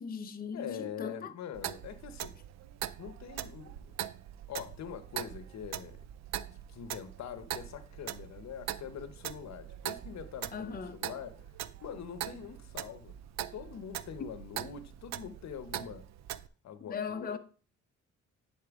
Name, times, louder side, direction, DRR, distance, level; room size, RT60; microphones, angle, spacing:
voice 1, 0.0-1.3 10.5-11.0 16.9-17.4, left 6 dB, 30° left, 0.7 m, -38 dB
voice 2, 0.5-2.4 3.0-4.0 4.5-6.0 6.5-11.4 11.8-13.1 13.5-16.1 16.6-17.4, left 8 dB, 65° left, 0.9 m, -44 dB
Clock, 1.5-16.5, right 12 dB, 60° right, 0.5 m, -42 dB
10.5 x 4.3 x 3.6 m
cardioid pair, 90°, 30 cm